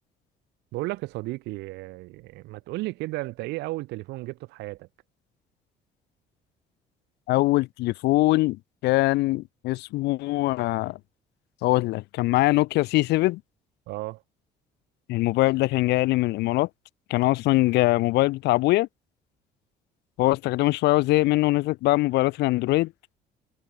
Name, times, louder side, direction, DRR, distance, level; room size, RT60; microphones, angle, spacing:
voice 1, 0.7-4.9 13.9-14.2, right 20 dB, 90° right, 7.9 m, -34 dB
voice 2, 7.3-11.0 11.6-13.4 15.1-16.7 17.1-18.9 20.2-22.9, left 19 dB, 80° left, 0.8 m, -22 dB
cardioid pair, 110°, 17 cm